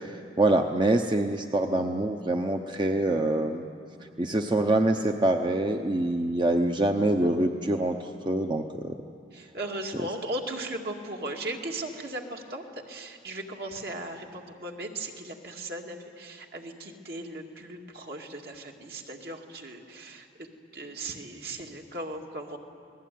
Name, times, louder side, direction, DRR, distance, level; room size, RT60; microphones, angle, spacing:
voice 1, 0.0-3.7 4.2-8.9, right 1 dB, 25° right, 4 dB, 0.8 m, -25 dB
voice 2, 9.3-20.5 20.7-22.6, right 1 dB, 60° right, 1 dB, 2.3 m, -37 dB
28.5 x 19.5 x 9.4 m, 2.6 s
head